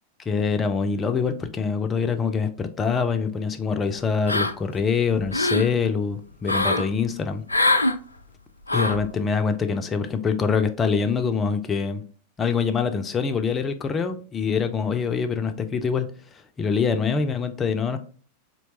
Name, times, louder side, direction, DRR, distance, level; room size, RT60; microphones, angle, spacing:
voice 1, 0.3-7.4 8.7-12.0 12.4-16.1 16.6-18.0, left 5 dB, 20° left, 0.5 m, -24 dB
sound 1, 4.3-4.8 5.1-5.7 6.4-6.9 7.5-8.0 8.7-9.0, left 2 dB, 80° left, 0.3 m, -22 dB
4.5 x 2.9 x 2.7 m
figure-of-eight pair, 90°, 0 cm